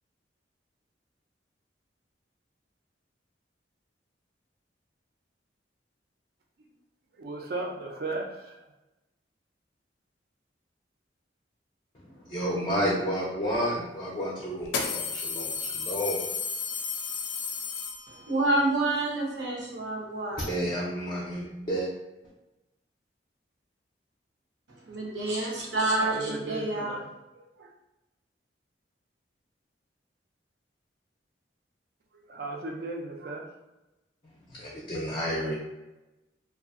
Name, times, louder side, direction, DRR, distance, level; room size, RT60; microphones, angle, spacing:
voice 1, 7.1-8.6 26.0-27.1 27.6-27.7 32.2-33.5, right 2 dB, 55° right, 2 dB, 0.4 m, -36 dB
voice 2, 11.9-16.2 20.4-21.9 34.2-35.5, equal, 25° left, -4 dB, 0.4 m, -31 dB
sound 1, 13.5-13.6 14.6-18.4, left 5 dB, 85° left, 0.4 m, -33 dB
voice 3, 18.1-20.5 24.9-27.0, right 2 dB, 75° right, -3 dB, 0.8 m, -28 dB
2.6 x 2.3 x 2.4 m, 1.0 s
head